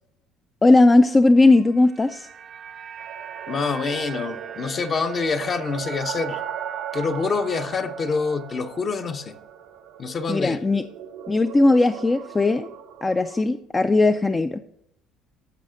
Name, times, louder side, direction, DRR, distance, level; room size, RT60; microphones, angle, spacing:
voice 1, 0.6-2.3 10.3-10.8 11.3-12.7 13.0-14.6, left 2 dB, 20° left, 0.4 m, -18 dB
sound 1, 1.5-9.8 10.0-10.2, right 8 dB, 45° right, 0.5 m, -41 dB
sound 2, 3.0-13.4, right 9 dB, 85° right, 0.9 m, -38 dB
voice 2, 3.5-6.4 6.9-9.4 10.0-10.6, left 4 dB, 40° left, 0.8 m, -26 dB
14.0 x 4.8 x 3.8 m
supercardioid pair, 95°, 0 cm